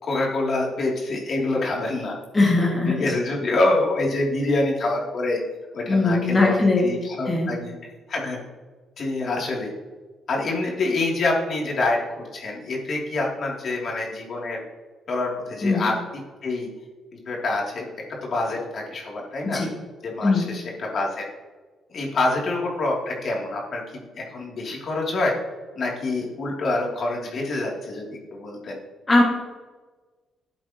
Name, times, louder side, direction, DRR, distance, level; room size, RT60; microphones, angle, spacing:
voice 1, 0.0-2.1 2.9-5.4 5.7-7.7 8.1-8.4 9.0-9.7 10.3-14.6 15.1-15.9 16.4-16.7 17.3-17.9 18.2-19.6 20.0-21.2 21.9-25.3 25.8-28.8, left 2 dB, 55° left, -2 dB, 2.8 m, -26 dB
voice 2, 2.3-3.0 5.9-6.9 7.3-7.5 15.6-15.9 19.4-19.7 20.2-20.5 29.1-29.2, left 3 dB, 25° left, -3 dB, 2.0 m, -20 dB
12.5 x 7.8 x 3.0 m, 1.3 s
cardioid pair, 90°, 0 cm